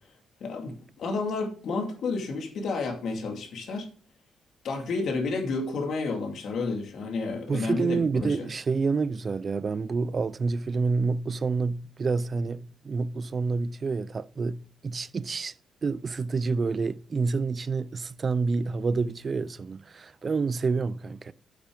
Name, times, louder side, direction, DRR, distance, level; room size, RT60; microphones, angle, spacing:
voice 1, 0.4-3.9 4.6-8.5, left 3 dB, 65° left, 2.4 m, -31 dB
voice 2, 7.5-15.5 15.8-21.3, right 4 dB, 30° right, 0.4 m, -28 dB
9.3 x 8.3 x 3.8 m
cardioid pair, 145°, 0 cm